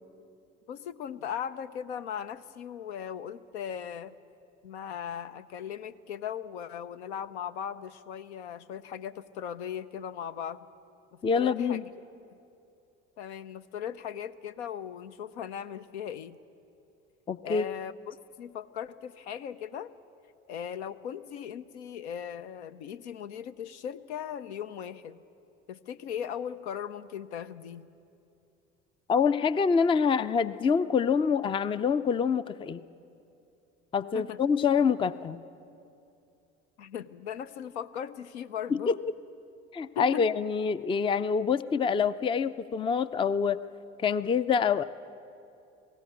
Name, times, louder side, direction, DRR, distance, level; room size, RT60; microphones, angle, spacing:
voice 1, 0.7-4.1 4.6-10.7 11.1-11.9 13.2-16.4 17.4-19.9 20.5-25.2 25.7-27.9 34.1-34.4 36.8-38.9 40.0-40.3, left 8 dB, 70° left, 13 dB, 0.7 m, -38 dB
voice 2, 11.2-11.8 17.3-17.6 29.1-32.8 33.9-35.4 38.9-39.0 39.7-43.6 44.0-44.8, left 6 dB, 15° left, 16 dB, 0.4 m, -26 dB
19.5 x 17.0 x 8.4 m, 2.7 s
figure-of-eight pair, 60°, 35 cm